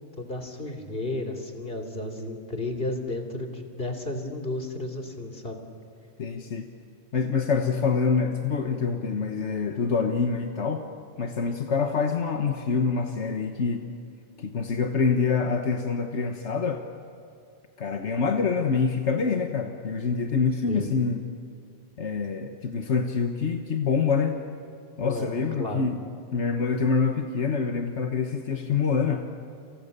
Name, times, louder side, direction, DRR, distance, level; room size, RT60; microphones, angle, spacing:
voice 1, 0.2-5.6 20.7-20.9 25.0-25.9, left 1 dB, 55° left, 4 dB, 3.3 m, -33 dB
voice 2, 6.2-6.7 7.1-10.8 11.2-13.9 14.4-16.8 17.8-21.2 22.0-24.4 25.0-26.0 26.3-29.2, left 5 dB, 85° left, 4 dB, 1.6 m, -26 dB
30.0 x 28.5 x 6.8 m, 2.6 s
omnidirectional pair, 1.1 m